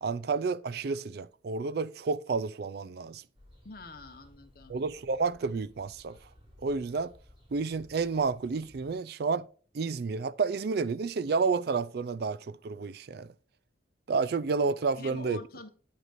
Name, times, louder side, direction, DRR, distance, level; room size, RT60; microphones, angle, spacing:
voice 1, 0.0-3.2 4.7-6.2 6.6-7.1 7.5-9.5 9.7-13.3 14.1-15.4, right 4 dB, 55° right, 0.4 m, -30 dB
sound 1, 3.3-8.9, equal, 30° right, 3.3 m, -58 dB
voice 2, 3.6-4.7 15.0-15.7, left 2 dB, 50° left, 1.2 m, -45 dB
8.9 x 8.0 x 2.6 m
head